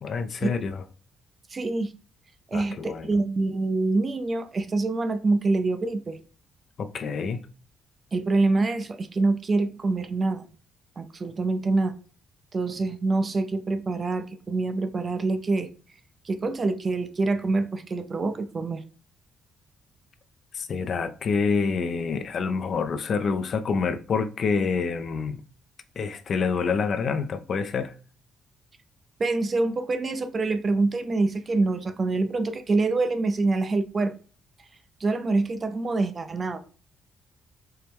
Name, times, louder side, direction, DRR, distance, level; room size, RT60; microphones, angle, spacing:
voice 1, 0.0-0.8 2.5-3.1 6.8-7.5 20.5-25.4 26.0-27.9, left 5 dB, 55° left, 0.4 m, -27 dB
voice 2, 1.5-1.9 2.5-6.2 8.1-10.5 11.0-11.9 12.5-15.7 16.2-18.8 29.2-34.1 35.0-36.6, right 3 dB, 35° right, 0.5 m, -25 dB
4.3 x 2.1 x 3.4 m
cardioid pair, 90°, 0 cm